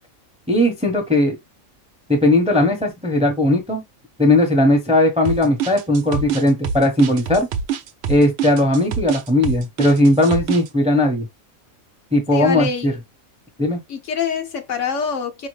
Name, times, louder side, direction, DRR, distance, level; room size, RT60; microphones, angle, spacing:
voice 1, 0.5-1.4 2.1-3.8 4.2-7.5 8.1-11.3 12.1-12.9 13.6-13.8, left 1 dB, 5° right, 0.7 m, -17 dB
sound 1, 5.3-10.7, right 6 dB, 65° right, 0.7 m, -25 dB
voice 2, 12.3-12.9 13.9-15.5, left 6 dB, 65° left, 0.9 m, -25 dB
4.9 x 2.8 x 3.1 m
omnidirectional pair, 1.5 m